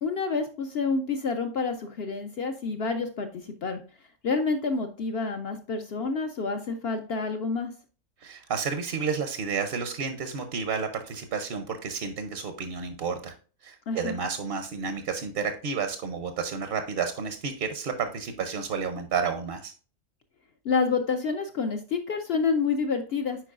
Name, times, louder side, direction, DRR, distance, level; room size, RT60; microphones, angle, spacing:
voice 1, 0.0-3.8 4.2-7.7 13.9-14.2 20.6-23.4, left 4 dB, 60° left, 6 dB, 0.7 m, -28 dB
voice 2, 8.2-13.3 13.6-19.7, right 5 dB, 55° right, 7 dB, 0.7 m, -31 dB
9.0 x 4.6 x 2.4 m, 0.38 s
omnidirectional pair, 1.5 m